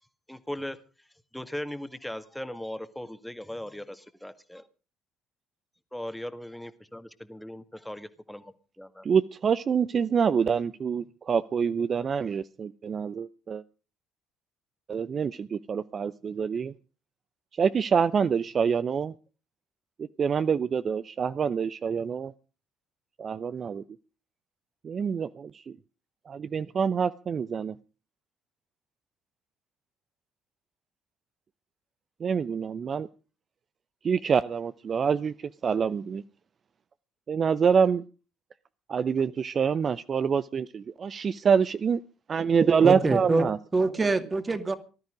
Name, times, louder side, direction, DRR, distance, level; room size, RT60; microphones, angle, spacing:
voice 1, 0.3-0.8 1.3-4.6 5.9-9.1, left 1 dB, 5° left, 1.8 m, -38 dB
voice 2, 9.0-13.6 14.9-16.7 17.6-19.1 20.0-22.3 23.2-23.8 24.8-25.8 26.3-27.7 32.2-33.1 34.0-35.3 35.6-36.2 37.3-38.0 38.9-42.0 42.3-43.6, right 6 dB, 45° right, 0.7 m, -26 dB
voice 3, 42.8-43.5 43.7-44.7, right 3 dB, 25° right, 2.4 m, -25 dB
19.0 x 13.0 x 5.1 m
hypercardioid pair, 55°, 0 cm